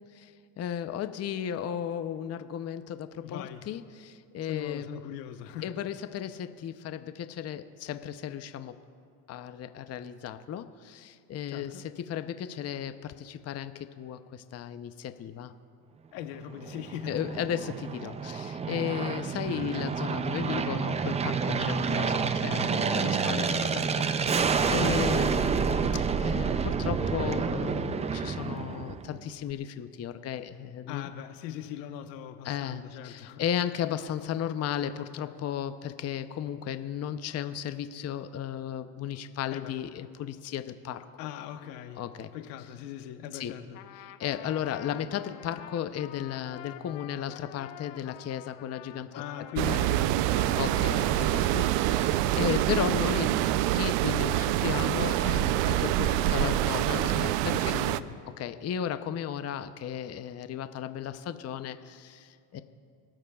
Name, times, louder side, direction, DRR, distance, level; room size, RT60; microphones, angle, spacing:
voice 1, 0.1-4.9 5.6-8.8 9.3-15.5 17.1-25.9 26.2-31.1 32.4-41.1 42.0-42.3 43.3-43.5 44.0-49.2 50.5-51.4 51.8-57.5 58.4-62.6, left 9 dB, 30° left, 0.7 m, -35 dB
voice 2, 3.2-3.7 4.4-5.7 11.5-11.8 16.1-17.2 23.0-23.9 30.9-33.4 39.5-39.8 41.2-42.0 42.3-43.8 49.1-51.7 56.0-56.7 57.5-58.1, left 11 dB, 85° left, 1.1 m, -40 dB
Aircraft, 16.5-29.2, right 6 dB, 15° right, 0.3 m, -29 dB
Trumpet, 43.7-51.8, left 12 dB, 65° left, 1.0 m, -48 dB
sound 1, 49.6-58.0, right 14 dB, 65° right, 0.6 m, -26 dB
29.0 x 14.0 x 2.4 m
supercardioid pair, 100°, 48 cm